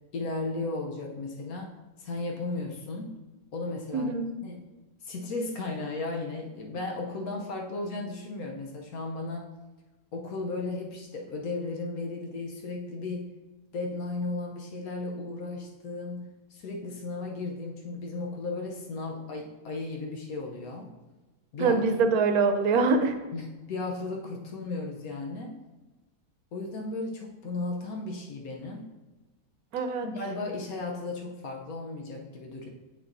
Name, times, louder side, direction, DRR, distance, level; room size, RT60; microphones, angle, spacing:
voice 1, 0.1-1.7 2.0-3.1 3.5-4.1 4.4-4.6 5.0-9.5 10.1-13.3 13.7-20.9 21.5-21.8 23.3-25.6 26.5-28.9 30.0-32.7, left 3 dB, 75° left, 1 dB, 1.2 m, -35 dB
voice 2, 3.9-4.3 21.6-23.1 29.7-30.1, right 4 dB, 85° right, 7 dB, 1.2 m, -24 dB
7.3 x 6.5 x 2.6 m, 1.1 s
omnidirectional pair, 1.5 m